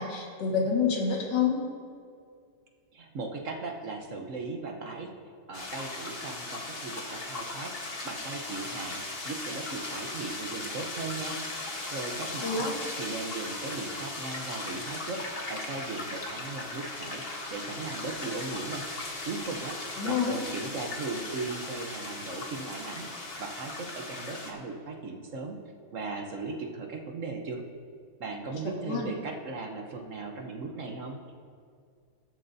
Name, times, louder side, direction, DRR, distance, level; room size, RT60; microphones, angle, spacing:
voice 1, 0.0-1.6 12.4-12.8 20.0-20.4 28.8-29.1, left 6 dB, 55° left, -2 dB, 2.2 m, -27 dB
voice 2, 2.9-5.1 5.5-11.4 11.9-18.8 19.2-25.6 25.9-27.6 28.2-31.2, right 3 dB, 60° right, 2 dB, 0.8 m, -38 dB
sound 1, 5.5-24.5, left 2 dB, 35° left, 1.1 m, -38 dB
20.5 x 7.5 x 2.7 m, 2.2 s
omnidirectional pair, 2.4 m